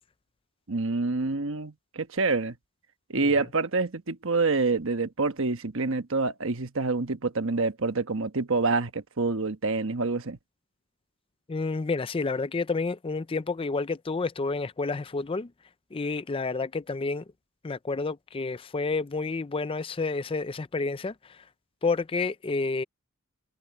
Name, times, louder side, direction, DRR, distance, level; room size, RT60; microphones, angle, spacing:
voice 1, 0.7-2.6 3.1-10.4, right 3 dB, 60° right, 1.2 m, -27 dB
voice 2, 11.5-15.5 15.9-17.2 17.6-21.4 21.8-22.8, left 3 dB, 25° left, 0.4 m, -30 dB
head